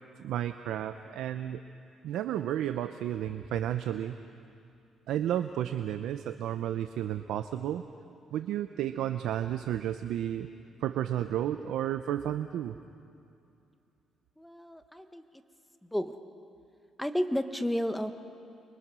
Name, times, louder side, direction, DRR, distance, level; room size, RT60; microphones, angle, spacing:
voice 1, 0.2-1.6 2.0-4.2 5.1-7.8 8.3-10.5 10.8-12.8, right 11 dB, 85° right, 9 dB, 0.7 m, -32 dB
voice 2, 14.4-15.2 15.9-16.1 17.0-18.1, equal, 5° left, 8 dB, 1.3 m, -31 dB
29.0 x 24.0 x 6.2 m, 2.5 s
cardioid pair, 90°, 0 cm